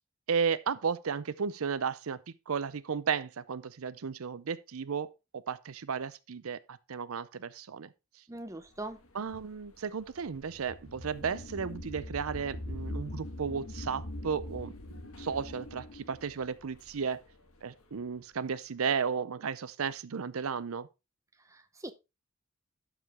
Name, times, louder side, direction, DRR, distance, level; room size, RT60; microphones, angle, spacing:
voice 1, 0.3-2.2 2.5-5.1 5.5-7.9 9.1-14.7 15.2-17.2 17.6-20.9, right 6 dB, 80° right, 0.6 m, -34 dB
voice 2, 8.3-9.0 21.5-21.9, right 2 dB, 15° right, 0.7 m, -41 dB
sound 1, 8.8-17.8, left 1 dB, 80° left, 1.5 m, -42 dB
12.0 x 5.0 x 3.5 m
head